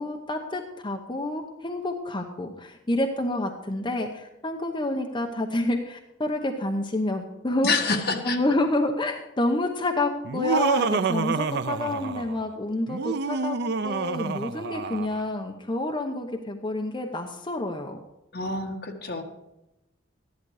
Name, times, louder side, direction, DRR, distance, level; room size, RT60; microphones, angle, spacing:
voice 1, 0.0-8.0 8.2-13.6 13.8-18.0, left 1 dB, 25° left, 3 dB, 0.9 m, -28 dB
voice 2, 7.6-8.4 18.3-19.2, left 3 dB, 60° left, 3 dB, 1.7 m, -27 dB
Laughter, 10.2-12.4 12.9-15.2, right 5 dB, 60° right, 0.5 m, -28 dB
13.5 x 11.5 x 4.8 m, 0.93 s
head